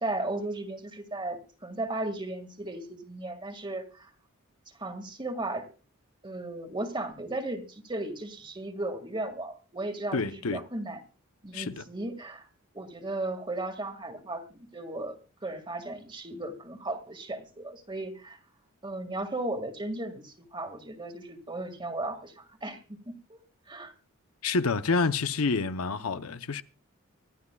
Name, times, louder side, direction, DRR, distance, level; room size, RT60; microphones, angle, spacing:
voice 1, 0.0-4.1 4.8-5.7 6.2-11.0 11.4-12.5 12.7-18.4 18.8-23.4 23.7-23.9, right 2 dB, 25° right, 1.9 m, -36 dB
voice 2, 10.1-10.6 11.5-11.8 24.4-26.6, left 4 dB, 85° left, 0.7 m, -28 dB
25.0 x 12.0 x 2.3 m
head